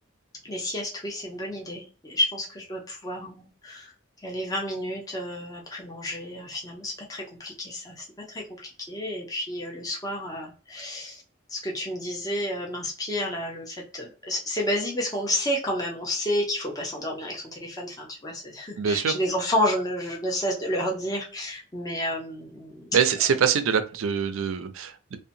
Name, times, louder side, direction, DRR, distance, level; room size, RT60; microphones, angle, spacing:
voice 1, 0.4-3.9 4.2-11.2 11.5-22.9, left 1 dB, 20° left, -2 dB, 0.6 m, -30 dB
voice 2, 18.8-19.1 22.9-25.2, right 7 dB, 85° right, 10 dB, 0.4 m, -24 dB
2.7 x 2.1 x 2.6 m, 0.36 s
head